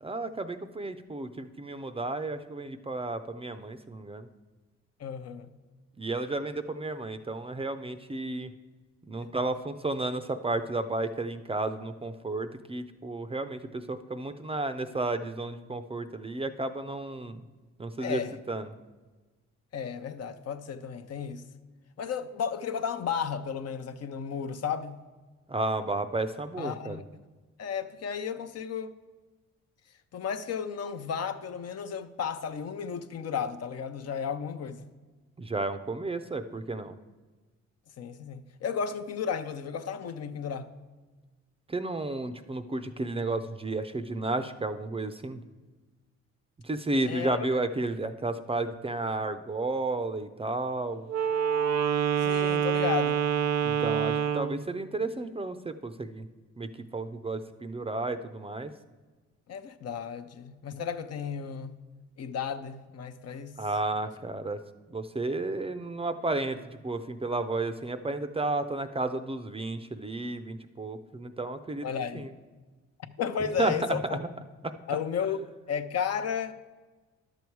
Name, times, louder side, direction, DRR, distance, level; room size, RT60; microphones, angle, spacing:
voice 1, 0.0-4.3 6.0-8.5 9.0-17.4 17.8-18.2 18.5-18.7 25.5-27.0 35.4-37.0 41.7-45.4 46.6-51.0 53.6-56.3 56.6-58.7 63.6-64.6 64.9-71.9 72.1-72.3 73.4-74.2 74.6-74.7, right 2 dB, 20° right, 0.5 m, -32 dB
voice 2, 5.0-5.5 18.0-18.4 19.7-21.4 22.0-25.0 26.6-27.0 27.6-28.9 30.1-34.8 38.0-40.7 47.0-47.5 52.2-53.3 59.5-61.8 62.2-63.6 71.8-72.3 73.2-74.2 74.9-76.5, left 7 dB, 55° left, 0.7 m, -33 dB
Wind instrument woodwind instrument, 51.1-54.6, right 8 dB, 65° right, 0.6 m, -26 dB
11.0 x 7.0 x 4.6 m
cardioid pair, 90°, 30 cm